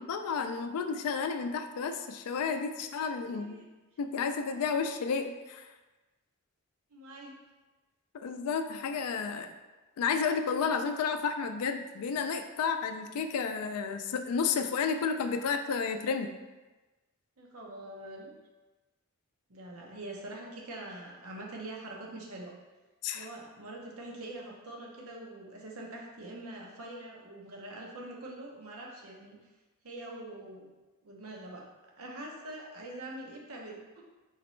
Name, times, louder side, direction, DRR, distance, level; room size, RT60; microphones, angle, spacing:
voice 1, 0.0-3.6 4.0-5.7 8.1-9.5 10.0-16.3 23.0-23.3, left 5 dB, 85° left, 8 dB, 0.3 m, -31 dB
voice 2, 3.3-3.6 6.9-7.4 17.4-18.3 19.5-22.5 23.1-29.4 29.8-30.7 31.0-31.6 32.0-34.0, right 1 dB, 70° right, -2 dB, 0.8 m, -44 dB
4.1 x 3.0 x 3.1 m, 1.2 s
head